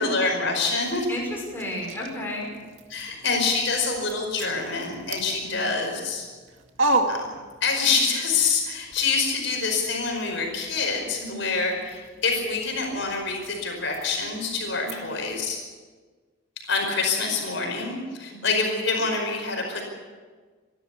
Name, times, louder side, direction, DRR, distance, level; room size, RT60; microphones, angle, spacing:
voice 1, 0.0-1.1 2.9-6.3 7.1-7.3 7.6-15.6 16.7-19.9, left 4 dB, 65° left, 2 dB, 5.1 m, -26 dB
sound 1, 0.8-8.0 8.3-15.5, right 2 dB, 70° right, 2.0 m, -35 dB
voice 2, 1.1-2.6 5.4-5.7 11.2-11.5 14.8-15.0 18.3-18.5, left 1 dB, 10° left, -2 dB, 5.9 m, -33 dB
27.0 x 12.5 x 8.5 m, 1.4 s
head